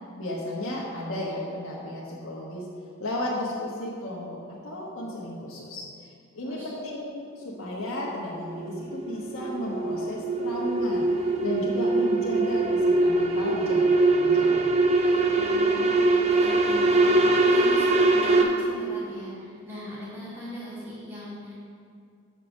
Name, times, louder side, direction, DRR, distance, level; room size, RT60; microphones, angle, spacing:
voice 1, 0.2-2.7 3.0-5.9 6.3-11.1 11.4-14.7, left 1 dB, 75° left, -5 dB, 1.2 m, -33 dB
voice 2, 6.4-6.7 15.1-21.5, left 1 dB, 10° right, -11 dB, 2.1 m, -39 dB
sound 1, 7.9-18.4, right 2 dB, 30° right, 0.6 m, -22 dB
6.5 x 5.4 x 6.3 m, 2.3 s
head